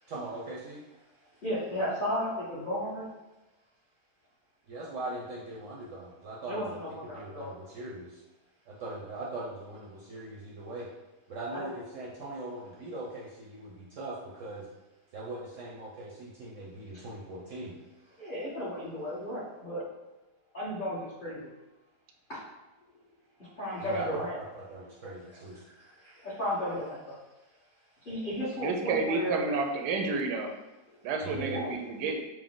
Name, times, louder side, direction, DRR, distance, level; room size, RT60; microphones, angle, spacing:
voice 1, 0.1-0.8 4.7-8.2 8.7-10.9 11.3-14.7 15.1-17.8 23.8-25.6 31.2-31.6, right 2 dB, 65° right, -4 dB, 0.8 m, -40 dB
voice 2, 1.4-3.1 6.5-7.5 11.5-11.7 16.9-17.0 18.2-19.9 20.5-21.5 22.3-22.4 23.4-24.3 25.8-27.1 28.0-29.4 30.9-31.0 31.5-31.7, equal, 35° left, -8 dB, 1.1 m, -34 dB
voice 3, 28.6-30.5 31.0-32.2, right 4 dB, 85° right, 3 dB, 1.2 m, -30 dB
4.5 x 2.0 x 3.7 m, 1.0 s
omnidirectional pair, 1.7 m